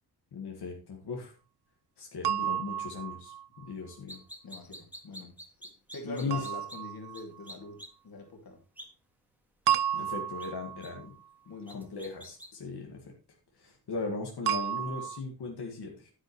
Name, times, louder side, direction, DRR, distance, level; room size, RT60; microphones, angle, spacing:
voice 1, 0.3-1.3 2.0-4.2 6.0-6.5 9.9-11.1 11.7-13.0 13.6-16.1, left 4 dB, 85° left, 0 dB, 2.0 m, -38 dB
sound 1, 2.2-3.7 6.3-7.5 9.7-11.1 14.5-15.2, right 10 dB, 80° right, 0.5 m, -32 dB
sound 2, 4.1-6.8 7.1-7.2 7.5-7.9 8.8-8.9 9.7-9.8 10.4-10.5 10.8-10.9 11.7-12.5, equal, 5° right, 1.7 m, -46 dB
voice 2, 4.4-5.4 5.9-8.6 9.9-10.1 11.4-11.9, left 3 dB, 60° left, 3 dB, 2.8 m, -44 dB
9.8 x 9.8 x 3.2 m, 0.34 s
wide cardioid pair, 105°, 39 cm